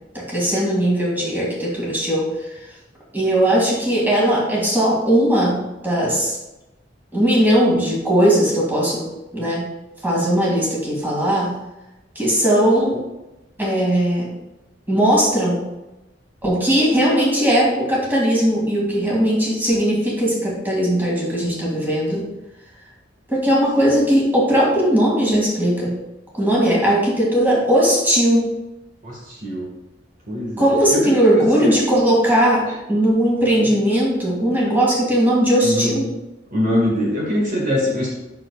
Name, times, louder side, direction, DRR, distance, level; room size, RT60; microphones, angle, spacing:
voice 1, 0.1-2.3 3.1-6.4 7.1-9.1 9.3-9.6 10.0-11.5 12.2-13.0 13.6-14.3 14.9-15.6 16.4-22.2 23.3-25.9 26.3-28.5 30.6-36.0, equal, 10° right, -4 dB, 2.3 m, -18 dB
voice 2, 29.0-29.7 30.3-31.7 33.6-33.7 35.6-36.0 36.5-38.1, left 1 dB, 45° right, -3 dB, 1.7 m, -23 dB
9.7 x 6.6 x 2.4 m, 0.98 s
head